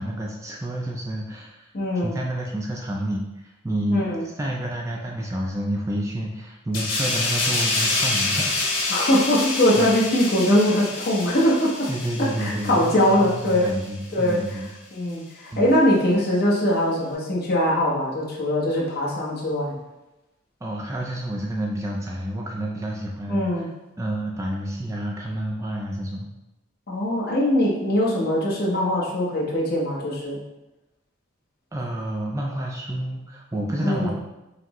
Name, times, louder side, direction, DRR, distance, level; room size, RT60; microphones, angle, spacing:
voice 1, 0.0-1.7 2.0-8.6 8.8-9.0 9.8-9.9 11.9-14.7 15.5-15.7 20.6-23.7 24.0-26.3 31.7-34.1, right 1 dB, 15° right, -1 dB, 0.3 m, -29 dB
voice 2, 1.7-2.1 3.9-4.2 8.9-11.9 12.2-13.7 14.1-14.4 14.9-19.7 23.3-23.7 26.9-30.4 33.8-34.1, left 1 dB, 50° left, -4 dB, 0.8 m, -22 dB
sound 1, 6.7-13.9 14.3-14.5, left 2 dB, 80° left, 1.2 m, -27 dB
5.7 x 2.0 x 2.9 m, 0.98 s
head